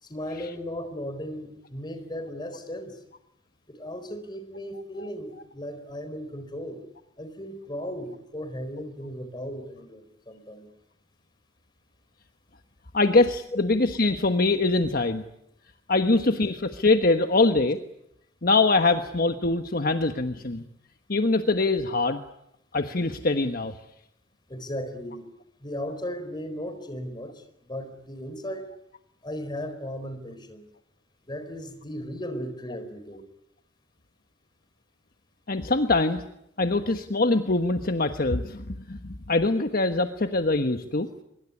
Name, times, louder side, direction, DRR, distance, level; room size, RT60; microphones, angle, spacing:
voice 1, 0.0-3.0 3.7-6.8 7.2-10.7 13.5-13.6 24.5-25.3 25.6-28.7 29.2-30.6 31.2-33.2, equal, 25° left, 9 dB, 4.4 m, -36 dB
voice 2, 12.9-15.2 15.9-17.8 18.4-20.6 21.1-22.2 22.7-23.7 35.5-36.2 36.6-41.1, left 3 dB, 50° left, 7 dB, 1.3 m, -23 dB
24.5 x 22.0 x 9.8 m, 0.78 s
head